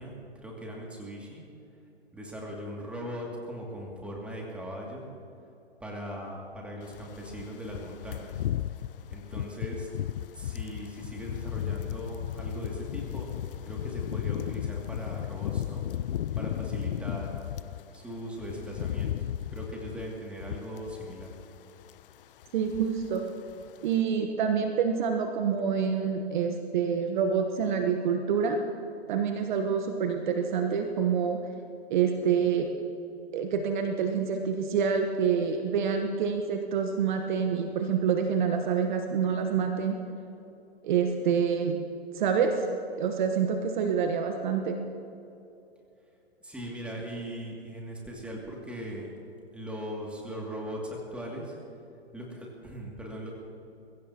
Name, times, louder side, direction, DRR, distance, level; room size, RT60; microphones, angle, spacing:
voice 1, 0.0-1.4 2.1-5.1 5.8-8.4 9.1-9.9 10.3-13.3 13.6-17.3 17.9-19.1 19.5-21.3 46.4-49.1 49.5-51.6 52.1-53.3, equal, 5° right, -2 dB, 2.4 m, -39 dB
sound 1, 6.9-17.8 18.2-21.6 21.8-22.1 22.4-23.2 23.5-23.7, left 11 dB, 55° left, 0.5 m, -35 dB
voice 2, 22.5-23.2 23.8-28.6 29.1-31.4 31.9-32.7 33.3-40.0 40.8-41.8 42.1-42.5 43.0-44.7, right 6 dB, 45° right, 5 dB, 1.2 m, -27 dB
22.0 x 16.0 x 2.9 m, 2.8 s
hypercardioid pair, 125°, 32 cm